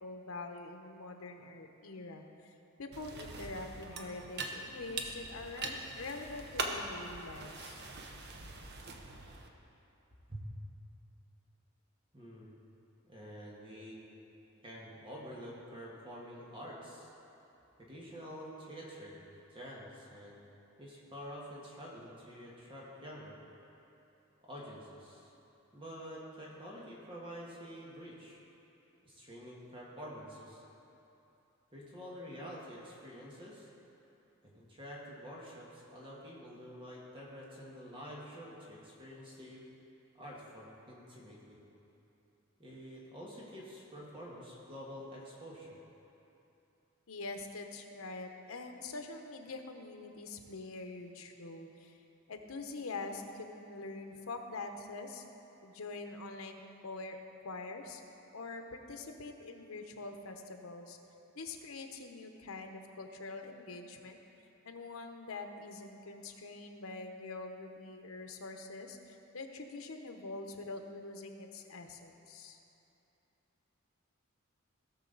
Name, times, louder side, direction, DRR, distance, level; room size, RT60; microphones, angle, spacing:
voice 1, 0.0-7.8 47.1-52.0 52.3-55.2 55.6-57.2 57.4-58.0 58.3-61.0 61.3-64.2 64.6-72.6, left 3 dB, 85° left, 5 dB, 0.9 m, -45 dB
sound 1, 2.9-9.5, right 3 dB, 55° right, 0.8 m, -42 dB
voice 2, 12.1-12.5 13.0-14.0 14.6-17.1 17.8-19.2 19.5-20.4 20.8-23.3 24.4-25.3 25.7-28.4 29.0-30.6 31.7-33.7 34.4-39.6 40.2-41.6 42.6-45.8, equal, 25° right, -5 dB, 1.6 m, -48 dB
17.5 x 6.4 x 3.9 m, 2.9 s
head